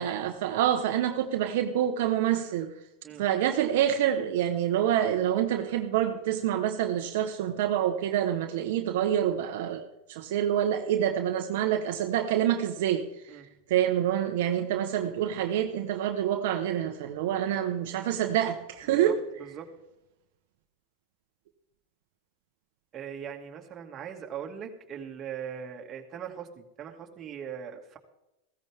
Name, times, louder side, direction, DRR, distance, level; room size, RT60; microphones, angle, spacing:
voice 1, 0.0-2.7 3.2-9.8 10.1-13.0 13.7-19.2, right 10 dB, 70° right, 4 dB, 1.2 m, -27 dB
voice 2, 18.9-19.7 22.9-28.0, right 8 dB, 35° right, 2 dB, 2.3 m, -40 dB
16.0 x 14.5 x 3.6 m, 0.90 s
hypercardioid pair, 110°, 0 cm